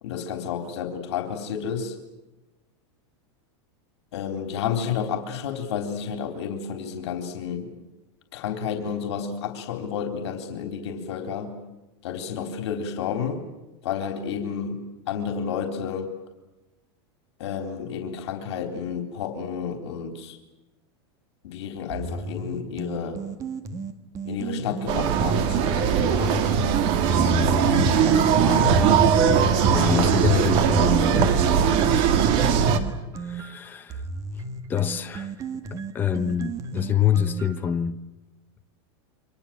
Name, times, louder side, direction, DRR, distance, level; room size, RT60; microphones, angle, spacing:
voice 1, 0.0-2.0 4.1-7.7 8.3-11.6 12.0-13.4 13.8-16.1 17.4-20.4 21.4-23.2 24.2-26.6 27.2-28.8 29.6-30.0, left 7 dB, 75° left, 3.9 m, -31 dB
sound 1, 21.9-25.4 25.9-29.4 29.9-37.7, right 5 dB, 20° right, 1.7 m, -35 dB
sound 2, 24.9-32.8, right 6 dB, 35° right, 2.2 m, -20 dB
voice 2, 29.7-32.0 33.1-34.0 34.7-35.3 35.7-38.0, left 8 dB, 15° left, 0.9 m, -26 dB
29.5 x 25.5 x 7.7 m
supercardioid pair, 170°, 15 cm